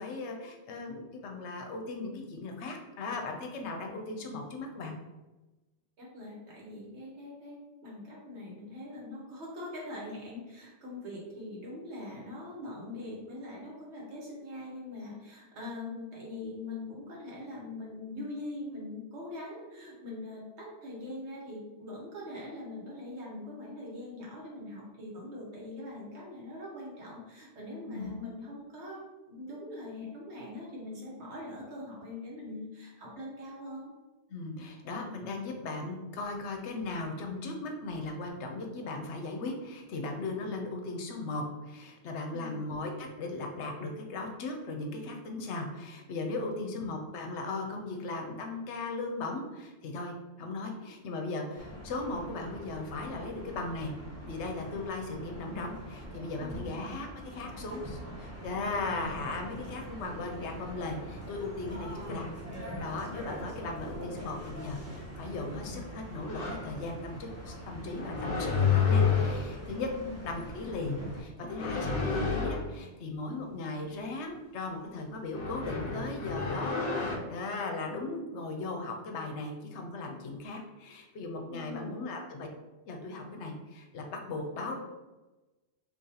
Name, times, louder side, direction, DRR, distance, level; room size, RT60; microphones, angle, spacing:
voice 1, 0.0-5.0 27.9-28.1 34.3-53.9 54.2-62.3 62.6-69.9 70.2-82.5 82.9-84.8, left 3 dB, 75° left, 3 dB, 0.9 m, -37 dB
voice 2, 6.0-29.0 29.3-33.9 42.3-42.7 46.4-46.8 56.4-56.7 69.9-70.1 81.5-82.0, left 2 dB, 70° right, -4 dB, 1.4 m, -42 dB
sound 1, 51.6-71.2, equal, 15° right, 0.6 m, -43 dB
sound 2, 66.3-66.7 68.0-69.6 71.5-72.7 75.3-77.2, left 5 dB, 40° left, 0.7 m, -29 dB
2.9 x 2.7 x 3.9 m, 1.1 s
omnidirectional pair, 1.2 m